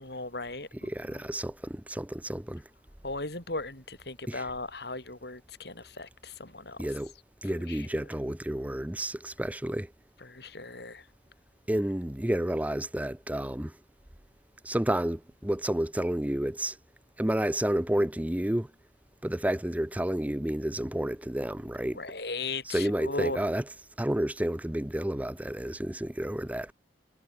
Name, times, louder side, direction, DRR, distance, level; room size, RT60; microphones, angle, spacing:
voice 1, 0.0-1.2 3.0-6.8 7.7-7.9 10.2-11.1 21.9-23.5, left 3 dB, 65° left, 5.3 m, -37 dB
voice 2, 0.8-2.6 4.3-4.4 6.8-7.1 7.4-9.9 11.7-13.7 14.6-16.8 17.2-18.7 19.2-22.0 22.7-23.6 24.0-26.7, right 1 dB, 10° right, 0.6 m, -30 dB
head